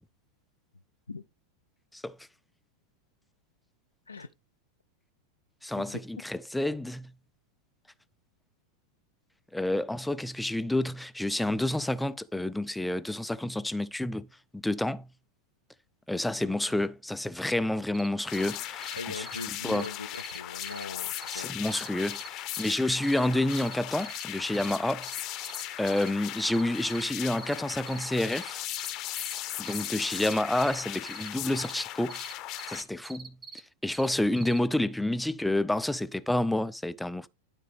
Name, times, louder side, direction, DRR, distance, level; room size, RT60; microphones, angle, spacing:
voice 1, 5.6-7.1 9.5-14.3 14.5-15.1 16.1-19.3 19.6-19.8 21.3-25.1 25.8-28.6 29.6-32.2 32.7-33.4 33.8-37.3, left 1 dB, 5° left, 0.4 m, -29 dB
sound 1, 17.9-18.1 18.3-18.6 18.8-19.0 19.3-19.4 19.7-19.9 20.1-20.8 21.2-21.4 21.7-22.3 22.5-23.7 24.0-24.2 24.5-24.8 25.0-26.1 26.4-27.1 27.4-27.6 27.9-29.4 29.7-31.3 31.6-31.8 32.1-32.3 32.6-33.6 33.9-34.6, right 5 dB, 20° right, 1.2 m, -44 dB
sound 2, 18.3-32.8, left 13 dB, 40° left, 0.7 m, -38 dB
voice 2, 18.9-21.5, left 4 dB, 80° left, 0.4 m, -40 dB
12.0 x 4.1 x 3.3 m
figure-of-eight pair, 90°, 0 cm